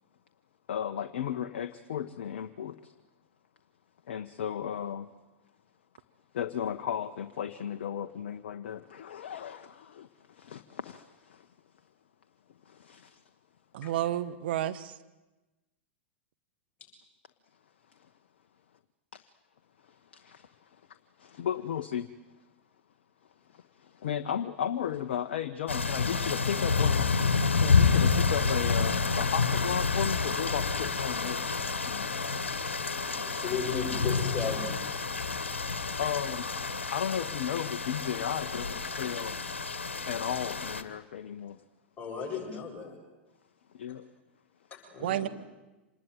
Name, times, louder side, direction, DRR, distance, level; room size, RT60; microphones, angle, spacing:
voice 1, 0.7-2.9 4.1-5.1 6.3-11.5 12.7-13.2 20.1-20.5 21.2-22.1 23.5-27.1 27.6-31.5 31.8-32.4 36.0-36.6 36.9-39.4 40.1-41.6 43.7-44.0, left 9 dB, 60° left, 9 dB, 1.0 m, -35 dB
voice 2, 13.7-14.9 33.1-33.2 45.0-45.3, right 12 dB, 55° right, 11 dB, 1.4 m, -31 dB
sound 1, 25.7-40.8, left 4 dB, 75° left, 1.7 m, -29 dB
voice 3, 33.4-34.8 42.0-42.9 44.7-45.3, left 6 dB, 25° left, -2 dB, 7.5 m, -35 dB
26.5 x 20.0 x 9.3 m, 1.1 s
figure-of-eight pair, 95°, 6 cm